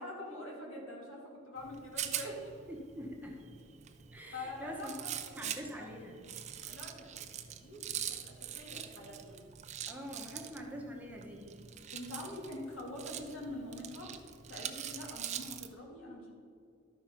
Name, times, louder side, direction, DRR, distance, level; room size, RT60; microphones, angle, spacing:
voice 1, 0.0-2.5 4.3-5.1 5.7-5.9 6.7-9.4 10.2-10.3 11.9-14.1 14.5-16.3, left 1 dB, 75° left, -2 dB, 2.3 m, -45 dB
Rattle, 1.6-15.7, right 9 dB, 35° right, 0.4 m, -44 dB
voice 2, 2.7-3.5 4.1-4.9 5.4-6.2 9.9-11.6, equal, 10° right, -1 dB, 0.9 m, -45 dB
12.0 x 4.7 x 5.7 m, 2.5 s
head